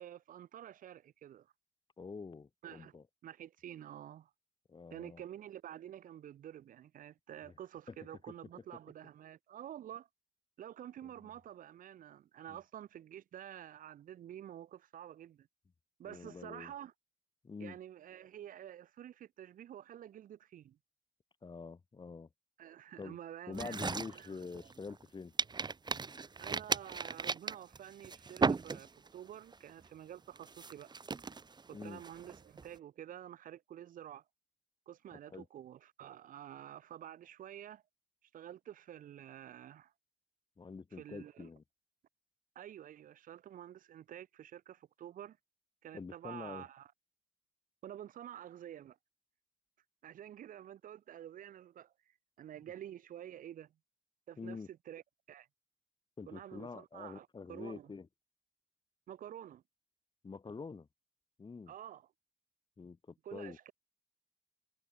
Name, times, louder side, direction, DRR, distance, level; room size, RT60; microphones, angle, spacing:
voice 1, 0.0-1.5 2.6-2.9 3.2-4.3 4.9-10.1 10.6-15.5 16.0-16.9 17.6-20.8 22.6-24.4 26.4-30.9 31.7-34.2 34.9-37.8 38.3-39.9 40.9-41.5 42.5-45.4 45.8-46.9 47.8-49.0 50.0-53.7 54.3-55.0 55.3-55.5 56.3-57.9 59.1-59.6 61.7-62.1 63.2-63.7, right 11 dB, 80° right, 5.0 m, -49 dB
voice 2, 2.0-3.0 4.7-5.2 7.4-7.5 7.9-8.0 12.5-12.6 16.0-16.7 17.4-17.8 21.4-22.3 23.0-23.2 23.5-25.3 31.7-32.0 35.3-35.4 40.6-41.6 45.9-46.6 54.4-54.7 56.2-58.1 60.2-60.9 61.4-61.7 62.8-63.6, left 4 dB, 35° left, 6.6 m, -46 dB
sound 1, 23.5-25.0 25.4-29.2 29.5-29.9 30.4-32.7, right 4 dB, 30° right, 1.7 m, -36 dB
cardioid pair, 95°, 14 cm